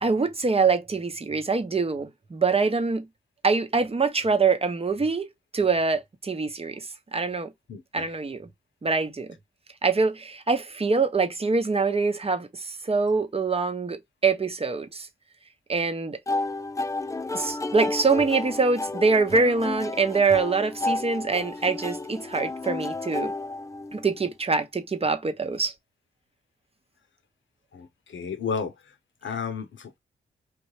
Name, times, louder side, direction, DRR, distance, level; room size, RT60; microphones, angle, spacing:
voice 1, 0.0-3.1 3.4-5.3 5.5-6.9 7.1-7.5 7.9-8.5 8.8-9.3 9.8-15.1 15.7-16.2 17.3-23.3 23.9-25.7, right 4 dB, 30° right, 0.8 m, -24 dB
voice 2, 7.7-8.1 27.7-27.9 28.1-28.7 29.2-30.0, left 6 dB, 65° left, 0.8 m, -32 dB
sound 1, 16.3-24.2, left 2 dB, 15° left, 0.4 m, -32 dB
3.1 x 2.5 x 3.2 m
supercardioid pair, 40°, 21 cm